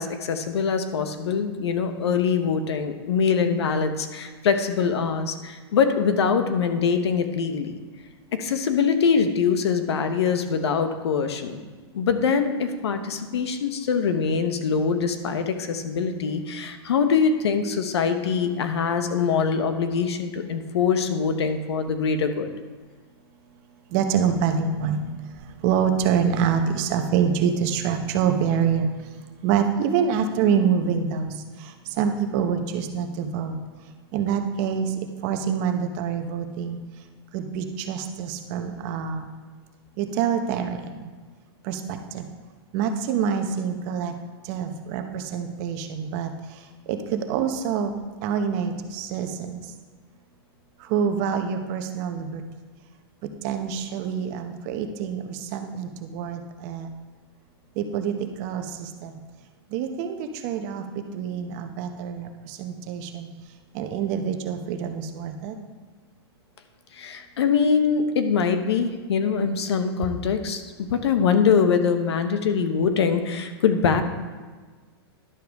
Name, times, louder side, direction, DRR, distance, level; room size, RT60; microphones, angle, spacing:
voice 1, 0.0-7.8 8.3-11.6 11.9-22.5 66.9-70.6 70.9-74.0, left 6 dB, 85° left, 8 dB, 1.0 m, -23 dB
voice 2, 23.9-25.0 25.6-28.9 29.4-31.3 32.0-33.6 34.1-34.9 35.2-36.8 37.3-39.3 40.0-40.8 41.6-42.2 42.7-44.1 44.5-46.3 46.9-47.9 48.2-49.6 50.9-52.4 53.4-56.9 57.8-58.1 58.4-59.1 59.7-60.8 61.1-63.3 63.7-65.5, right 7 dB, 45° right, 6 dB, 0.9 m, -26 dB
11.0 x 6.9 x 3.5 m, 1.4 s
hypercardioid pair, 140°, 14 cm